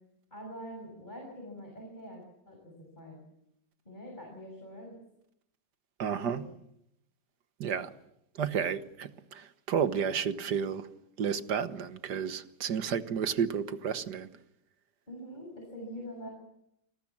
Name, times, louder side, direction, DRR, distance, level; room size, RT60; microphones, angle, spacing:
voice 1, 0.3-3.2 3.9-5.0 6.2-6.5 15.1-16.3, equal, 25° left, 7.1 m, -44 dB
voice 2, 6.0-6.5 7.6-7.9 8.4-10.9 11.2-14.3, right 7 dB, 70° right, 1.8 m, -31 dB
29.0 x 19.5 x 7.4 m
omnidirectional pair, 1.9 m